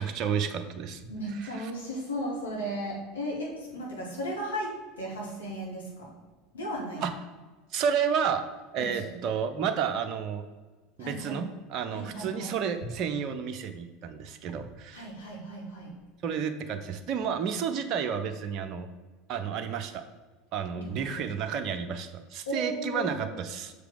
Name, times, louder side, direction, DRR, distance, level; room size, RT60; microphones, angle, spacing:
voice 1, 0.0-1.0 1.4-1.7 7.0-7.1 7.7-8.4 8.7-10.4 11.0-15.0 16.2-18.9 19.3-20.0 20.5-23.7, right 7 dB, 45° right, 7 dB, 0.8 m, -31 dB
voice 2, 1.1-6.1 6.5-7.1 8.8-9.1 11.0-11.4 11.9-12.5 14.9-15.9 20.7-21.2 22.5-23.4, right 1 dB, 80° left, -3 dB, 2.3 m, -35 dB
6.7 x 5.0 x 5.0 m, 1.3 s
figure-of-eight pair, 75°, 0 cm